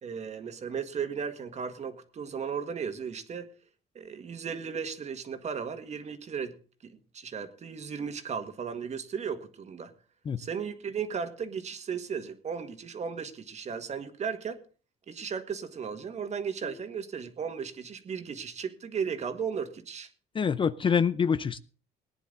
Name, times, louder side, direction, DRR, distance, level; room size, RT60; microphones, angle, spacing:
voice 1, 0.0-3.5 3.9-6.6 6.8-9.9 10.4-14.6 15.1-20.1, right 6 dB, 40° right, 8 dB, 1.8 m, -35 dB
voice 2, 20.3-21.6, left 6 dB, 30° left, 15 dB, 0.6 m, -26 dB
18.5 x 10.0 x 3.9 m, 0.38 s
cardioid pair, 110°, 17 cm